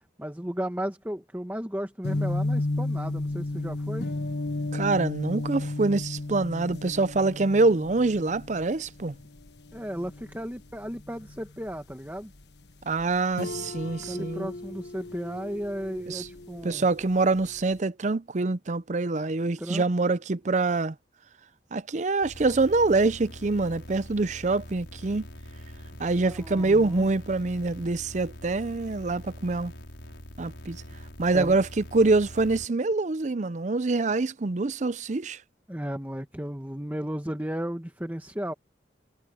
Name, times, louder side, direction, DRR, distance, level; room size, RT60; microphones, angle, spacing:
voice 1, 0.2-4.1 9.7-12.3 14.1-16.9 19.6-19.8 26.2-27.1 31.3-31.6 35.7-38.5, equal, 10° right, 1.6 m, -34 dB
sound 1, 2.0-17.7, left 2 dB, 70° left, 1.4 m, -34 dB
voice 2, 4.7-9.1 12.8-14.5 16.1-16.3 16.6-20.9 21.7-25.3 26.0-29.7 30.4-30.8 31.2-35.4, right 3 dB, 40° right, 0.6 m, -25 dB
sound 2, 22.2-32.7, equal, 85° left, 5.6 m, -44 dB
head